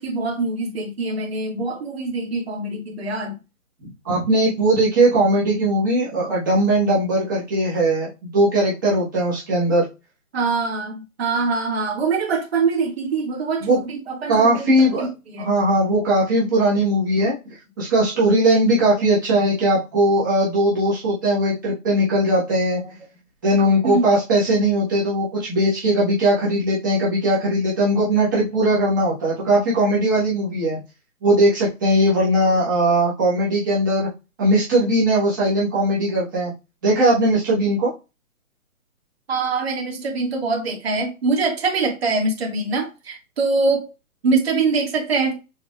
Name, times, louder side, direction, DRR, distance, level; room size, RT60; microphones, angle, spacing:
voice 1, 0.0-3.4 10.3-15.5 19.0-19.2 22.8-22.9 23.8-24.1 39.3-43.9 44.2-45.4, right 4 dB, 45° right, 1.8 m, -24 dB
voice 2, 4.0-9.9 13.6-13.8 14.3-15.1 15.4-17.3 17.8-22.8 23.4-30.8 31.2-34.1 34.4-36.5 36.8-37.9, right 1 dB, 15° right, 1.1 m, -19 dB
6.8 x 3.2 x 2.3 m
hypercardioid pair, 175°, 43 cm